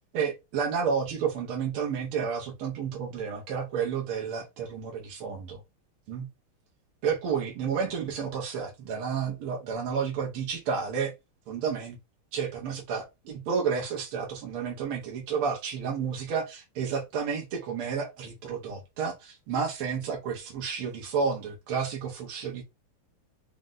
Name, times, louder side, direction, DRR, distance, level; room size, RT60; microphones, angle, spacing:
voice 1, 0.1-5.6 6.1-6.3 7.0-11.1 11.5-12.0 12.3-22.6, right 6 dB, 85° right, 1.8 m, -31 dB
5.0 x 2.1 x 3.8 m
omnidirectional pair, 2.3 m